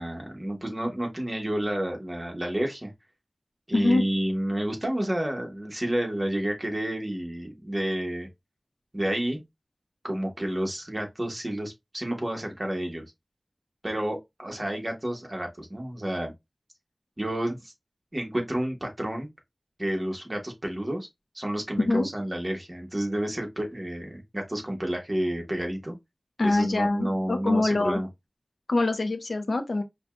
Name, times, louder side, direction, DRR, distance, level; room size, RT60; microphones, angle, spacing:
voice 1, 0.0-2.9 3.7-8.3 8.9-9.4 10.0-13.0 13.8-16.3 17.2-17.7 18.1-19.3 19.8-21.1 21.3-25.9 26.4-28.1, right 1 dB, 35° right, 1.3 m, -30 dB
voice 2, 3.7-4.0 21.8-22.1 26.4-28.0 28.7-29.8, left 2 dB, 90° left, 0.6 m, -24 dB
5.1 x 2.3 x 2.4 m
wide cardioid pair, 50°, 0 cm